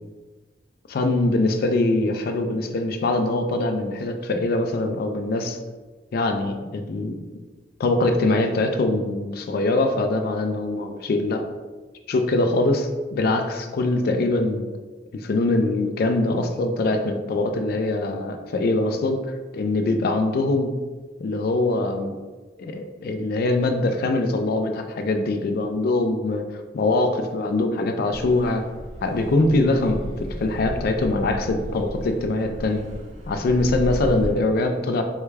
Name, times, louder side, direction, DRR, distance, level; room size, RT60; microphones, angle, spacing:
voice 1, 0.9-5.6 6.1-7.2 7.8-11.4 12.1-14.7 15.1-19.2 19.5-20.7 21.2-22.2 22.6-28.6 29.0-32.8 33.3-35.0, left 2 dB, 60° left, 6 dB, 0.3 m, -23 dB
Car passing by / Accelerating revving vroom, 28.1-34.3, equal, 45° right, 0.6 m, -34 dB
3.4 x 2.3 x 3.2 m, 1.3 s
head